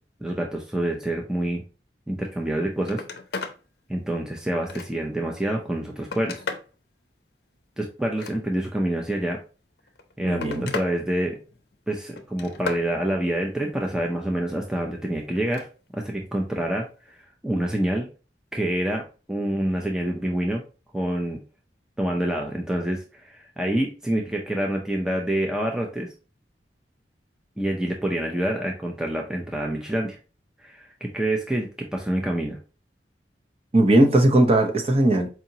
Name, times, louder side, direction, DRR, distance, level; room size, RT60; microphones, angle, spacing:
voice 1, 0.2-1.6 2.1-3.0 3.9-6.4 7.8-9.4 10.2-11.4 11.9-15.7 15.9-18.1 18.5-20.6 20.9-21.4 22.0-26.1 27.6-30.2 30.6-32.6, right 1 dB, 5° right, 0.5 m, -27 dB
Telephone, 2.4-2.5 2.8-3.6 4.1-5.2 5.7-6.7 8.0-8.8 9.8-10.9 11.3-11.7 12.2-12.9 15.3-15.7 17.1-17.2, left 3 dB, 60° left, 0.6 m, -36 dB
voice 2, 10.2-10.7 33.7-35.3, right 1 dB, 35° right, 0.7 m, -18 dB
4.8 x 2.8 x 2.7 m
head